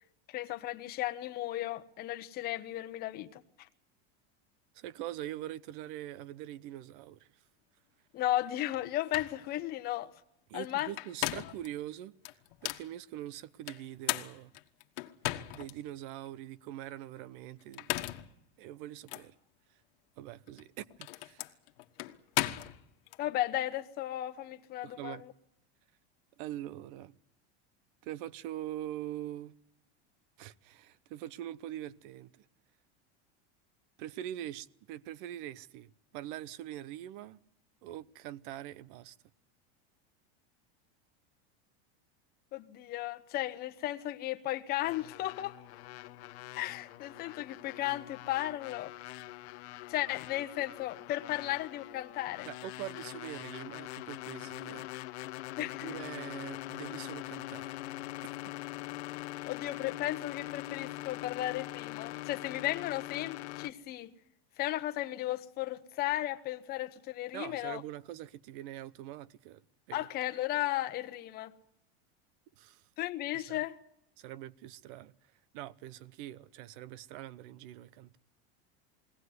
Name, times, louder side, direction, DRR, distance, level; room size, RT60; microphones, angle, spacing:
voice 1, 0.3-3.4 8.1-10.1 10.5-10.9 23.2-25.3 42.5-45.6 46.5-48.9 49.9-52.5 55.6-55.9 59.4-64.1 64.6-67.8 69.9-71.5 73.0-73.8, left 14 dB, 30° left, 1.0 m, -35 dB
voice 2, 4.7-7.3 10.5-12.1 12.6-14.5 15.5-18.1 18.6-19.4 20.2-21.5 24.8-25.2 26.4-27.1 28.0-29.5 30.4-32.5 34.0-37.4 37.8-39.2 52.4-54.9 55.6-57.8 67.3-69.6 69.9-70.1 72.6-72.8 73.3-73.6 74.2-75.1 75.5-78.2, right 13 dB, 55° right, 0.9 m, -43 dB
sound 1, 8.7-8.8 9.1-9.4 10.8-11.7 12.2-12.9 13.7-15.7 16.2-16.3 17.6-18.3 19.1-19.3 20.5-23.2, left 18 dB, 65° left, 1.5 m, -36 dB
sound 2, 44.8-63.7, left 18 dB, 85° left, 1.0 m, -43 dB
22.5 x 17.5 x 9.5 m
supercardioid pair, 170°, 32 cm